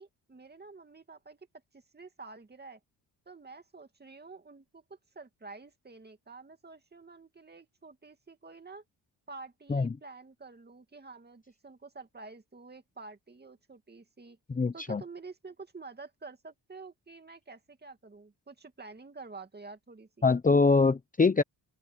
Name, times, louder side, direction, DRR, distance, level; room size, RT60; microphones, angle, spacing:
voice 1, 0.0-1.4 1.7-2.8 3.3-8.8 9.3-14.4 14.7-20.3, right 3 dB, 25° right, 2.5 m, -49 dB
voice 2, 14.5-15.0 20.2-21.4, left 4 dB, 20° left, 0.9 m, -24 dB
open air
cardioid pair, 110°, 43 cm